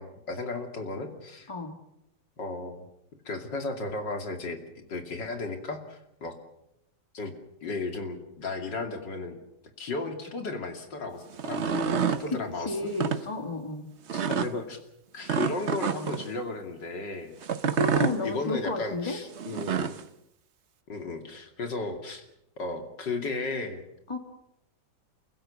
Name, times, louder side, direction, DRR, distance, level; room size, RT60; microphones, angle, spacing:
voice 1, 0.0-1.5 2.4-2.8 3.2-6.3 7.1-7.3 7.6-9.4 9.8-12.9 14.1-14.8 15.1-17.3 17.9-20.0 20.9-22.2 22.6-23.8, left 3 dB, 90° left, 5 dB, 3.3 m, -35 dB
voice 2, 1.5-1.8 12.1-13.9 17.6-19.2 24.1-24.2, left 2 dB, 15° left, 5 dB, 2.3 m, -32 dB
sound 1, 11.3-12.2 12.9-13.2 14.1-14.5 15.3-16.2 17.4-18.2 19.4-20.0, right 7 dB, 45° right, 1.0 m, -28 dB
29.0 x 16.0 x 7.1 m, 0.81 s
omnidirectional pair, 1.9 m